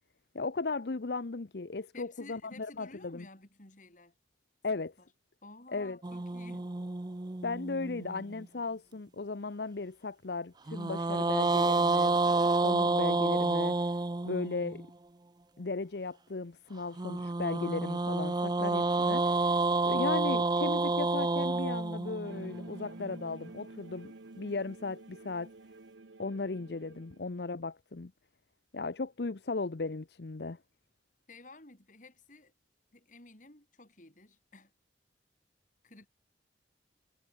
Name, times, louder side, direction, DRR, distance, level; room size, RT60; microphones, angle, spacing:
voice 1, 0.3-3.2 4.6-4.9 5.7-6.0 7.4-12.2 12.6-13.8 14.2-14.8 15.6-19.4 19.8-25.5 26.2-28.1 28.7-30.6, left 3 dB, 65° left, 0.7 m, -36 dB
voice 2, 1.9-4.2 4.7-5.1 5.4-6.7 31.3-32.5 32.9-34.7 35.8-36.1, left 2 dB, 45° left, 3.8 m, -53 dB
sound 1, 6.0-8.4 10.7-14.8 17.0-23.2, right 3 dB, 25° right, 0.5 m, -29 dB
sound 2, 22.2-27.3, right 2 dB, 85° right, 1.0 m, -50 dB
head